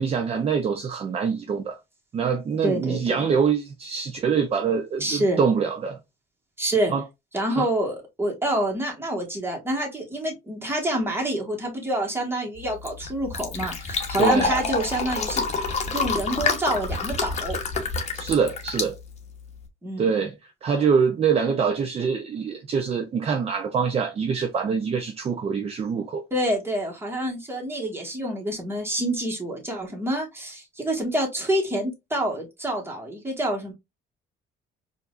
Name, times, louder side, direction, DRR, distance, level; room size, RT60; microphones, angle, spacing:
voice 1, 0.0-1.8 2.1-6.0 6.9-7.0 7.5-7.7 14.2-14.5 18.1-19.0 20.0-20.3 20.6-26.2, right 6 dB, 35° right, 0.6 m, -24 dB
voice 2, 2.6-3.3 5.0-5.4 6.6-6.9 7.3-15.4 15.9-17.6 19.8-20.1 26.3-33.7, right 1 dB, 15° right, 1.5 m, -27 dB
Fill (with liquid), 12.6-19.7, left 4 dB, 40° left, 1.0 m, -28 dB
4.5 x 2.6 x 2.4 m
cardioid pair, 110°, 17 cm